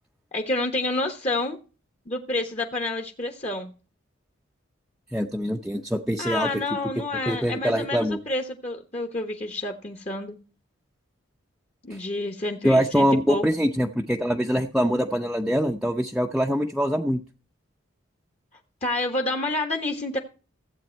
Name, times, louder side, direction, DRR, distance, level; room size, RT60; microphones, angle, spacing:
voice 1, 0.3-1.6 2.1-3.7 6.2-10.4 11.8-13.4 18.8-20.2, left 2 dB, 35° left, 5 dB, 1.1 m, -29 dB
voice 2, 5.1-6.6 7.3-8.2 11.9-12.0 12.6-17.2, equal, 5° right, 0 dB, 0.6 m, -24 dB
15.0 x 8.2 x 4.5 m, 0.35 s
head